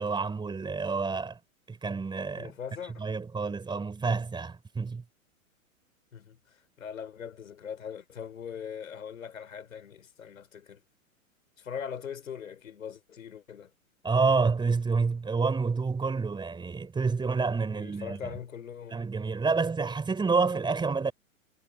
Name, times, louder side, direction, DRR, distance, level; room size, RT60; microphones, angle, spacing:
voice 1, 0.0-1.4 1.7-2.5 3.0-5.0 14.0-18.2 18.9-21.1, right 4 dB, 10° right, 4.0 m, -28 dB
voice 2, 2.3-3.1 6.1-10.8 11.6-13.7 17.7-19.1, left 7 dB, 70° left, 5.4 m, -41 dB
figure-of-eight pair, 105°, 42 cm